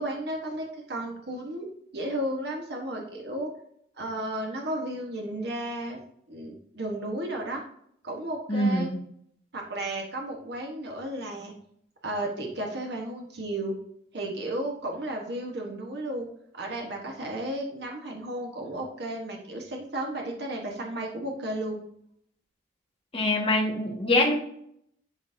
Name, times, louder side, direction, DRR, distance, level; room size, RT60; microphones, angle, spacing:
voice 1, 0.0-3.5 4.0-6.0 6.3-7.6 8.0-8.9 9.5-11.5 12.0-13.7 14.1-16.3 16.5-21.8, right 1 dB, 60° right, 0 dB, 1.2 m, -33 dB
voice 2, 8.5-9.0 23.1-24.3, left 1 dB, 30° left, -2 dB, 1.7 m, -24 dB
11.0 x 3.9 x 2.7 m, 0.69 s
head